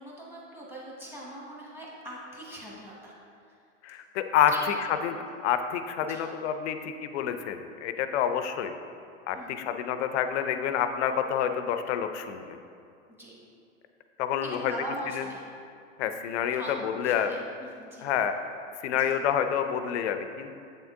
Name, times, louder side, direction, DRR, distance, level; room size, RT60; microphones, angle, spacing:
voice 1, 0.0-3.1 4.5-4.7 6.1-6.2 9.3-9.6 13.2-13.3 14.4-15.4 16.5-18.1 18.9-19.2, right 1 dB, 5° right, -5 dB, 1.1 m, -41 dB
voice 2, 3.8-4.7 5.0-5.2 5.4-8.7 9.3-12.6 14.2-14.7 15.1-15.2 16.0-17.3 18.0-18.3 18.8-20.5, left 9 dB, 60° left, 8 dB, 0.5 m, -28 dB
7.7 x 3.7 x 3.5 m, 2.4 s
hypercardioid pair, 125°, 39 cm